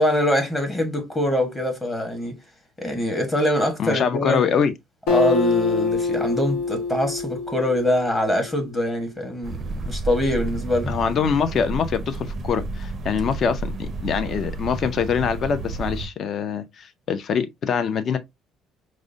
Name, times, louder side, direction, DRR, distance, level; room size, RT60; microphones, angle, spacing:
voice 1, 0.0-2.4 2.8-4.5 5.1-9.6 9.8-10.9, left 1 dB, 15° left, 1.1 m, -23 dB
voice 2, 3.8-4.7 10.9-18.2, left 6 dB, 45° left, 0.5 m, -24 dB
Acoustic guitar, 5.1-8.7, left 4 dB, 90° left, 1.1 m, -25 dB
sound 1, 9.4-16.1, right 3 dB, 40° right, 0.4 m, -31 dB
4.8 x 2.1 x 2.6 m
cardioid pair, 125°, 0 cm